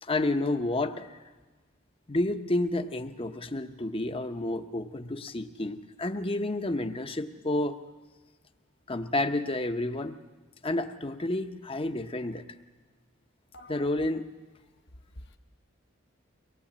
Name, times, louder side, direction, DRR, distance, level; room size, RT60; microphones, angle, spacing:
voice 1, 0.0-1.2 2.1-7.8 8.9-10.2 10.6-12.4 13.7-14.2, left 2 dB, 25° left, 9 dB, 0.9 m, -30 dB
voice 2, 13.5-14.2 15.2-15.4, left 1 dB, 55° left, 4 dB, 1.1 m, -47 dB
23.5 x 19.0 x 8.6 m, 1.3 s
head